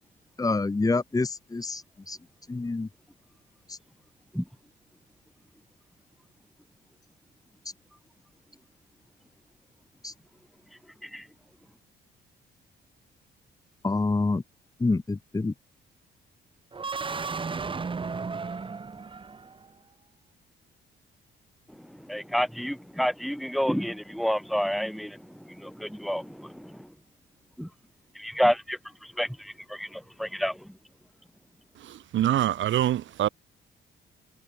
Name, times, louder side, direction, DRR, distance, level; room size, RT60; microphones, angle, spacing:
voice 1, 0.4-2.2 2.5-2.9 3.7-3.8 10.0-10.1 13.8-14.4 14.8-15.5, left 3 dB, 20° left, 1.5 m, -27 dB
sound 1, 16.7-19.7, right 4 dB, 25° right, 1.0 m, -34 dB
voice 2, 21.7-26.9 27.6-27.7 28.1-30.8, equal, ahead, 0.8 m, -30 dB
voice 3, 31.8-33.3, right 12 dB, 75° right, 1.6 m, -25 dB
cardioid pair, 90°, 20 cm